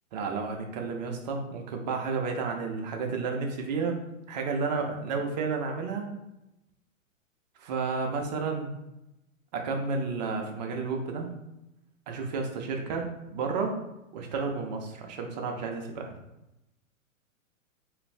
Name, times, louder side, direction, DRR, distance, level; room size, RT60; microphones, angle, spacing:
voice 1, 0.1-4.0 4.3-6.1 7.6-8.7 9.5-11.3 12.1-13.8 14.1-16.1, right 4 dB, 35° right, 2 dB, 0.4 m, -31 dB
2.5 x 2.4 x 3.3 m, 0.90 s
figure-of-eight pair, 115°, 41 cm